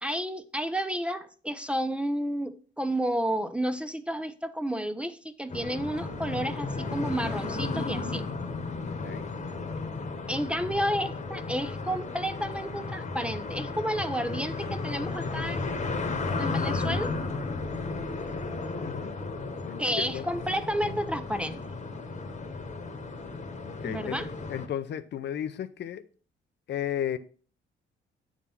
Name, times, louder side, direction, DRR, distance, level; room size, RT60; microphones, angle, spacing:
voice 1, 0.0-8.2 10.3-15.6 16.4-17.1 19.8-21.6 23.8-24.3, equal, 5° right, 0.6 m, -31 dB
sound 1, 5.5-24.7, left 3 dB, 35° left, 1.2 m, -34 dB
voice 2, 8.8-9.3 18.8-19.2 19.6-20.3 23.6-24.2 24.5-26.0 26.7-27.2, left 10 dB, 60° left, 0.6 m, -34 dB
8.2 x 3.7 x 5.9 m
cardioid pair, 90°, 20 cm